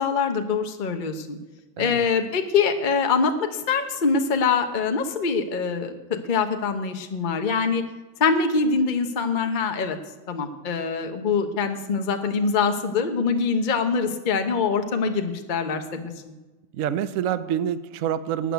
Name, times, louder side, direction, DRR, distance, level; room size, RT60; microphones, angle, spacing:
voice 1, 0.0-1.4 1.8-7.8 8.2-10.0 10.3-16.1, left 5 dB, 35° left, 6 dB, 0.9 m, -24 dB
voice 2, 1.8-2.1 16.7-18.5, right 9 dB, 65° right, 13 dB, 0.9 m, -27 dB
12.5 x 6.8 x 9.2 m, 1.1 s
omnidirectional pair, 1.7 m